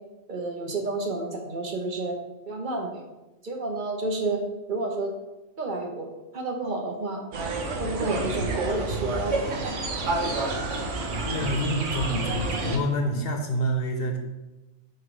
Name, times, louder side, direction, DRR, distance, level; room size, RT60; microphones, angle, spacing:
voice 1, 0.3-2.2 2.5-3.0 3.4-4.4 4.7-5.1 5.6-6.1 6.3-7.2 7.8-9.6, right 2 dB, 45° right, 2 dB, 1.0 m, -30 dB
sound 1, 7.3-12.8, right 3 dB, 80° right, 1.2 m, -29 dB
voice 2, 11.2-14.2, equal, 55° left, 4 dB, 0.9 m, -27 dB
4.7 x 4.6 x 4.9 m, 1.0 s
omnidirectional pair, 1.3 m